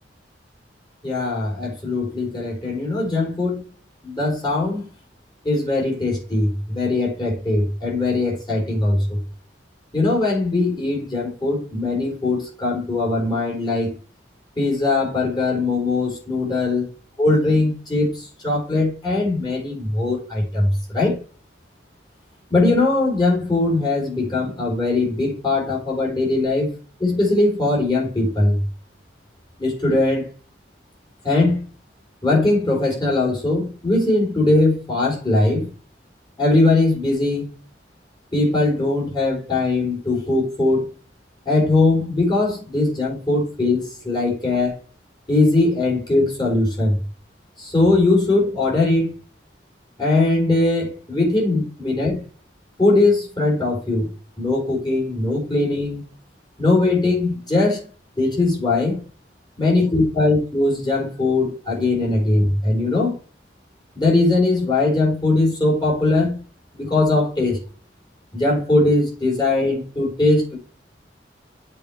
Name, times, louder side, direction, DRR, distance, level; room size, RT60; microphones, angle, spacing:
voice 1, 1.0-3.6 4.0-4.9 5.4-9.2 9.9-13.9 14.6-16.8 17.2-21.1 22.5-26.7 27.0-28.6 29.6-30.3 31.2-31.6 32.2-35.7 36.4-37.5 38.3-40.9 41.5-44.8 45.3-47.0 47.6-49.1 50.0-52.2 52.8-54.1 54.4-56.0 56.6-57.9 58.2-59.0 59.6-63.2 64.0-66.4 66.7-67.6 68.3-70.6, left 2 dB, 25° left, 4.2 m, -20 dB
7.8 x 5.0 x 6.0 m
head